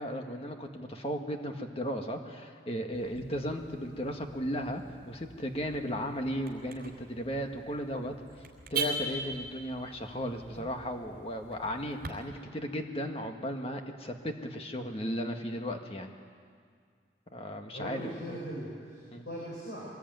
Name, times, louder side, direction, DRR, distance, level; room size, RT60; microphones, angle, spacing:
voice 1, 0.0-8.1 8.7-16.1 17.3-18.0 18.3-18.4 19.1-19.2, equal, 30° left, 4 dB, 1.7 m, -35 dB
Car / Alarm, 2.9-12.1, right 2 dB, 50° right, 3.7 m, -42 dB
voice 2, 17.7-19.9, equal, 60° left, -5 dB, 6.0 m, -40 dB
23.5 x 20.0 x 9.3 m, 2.1 s
head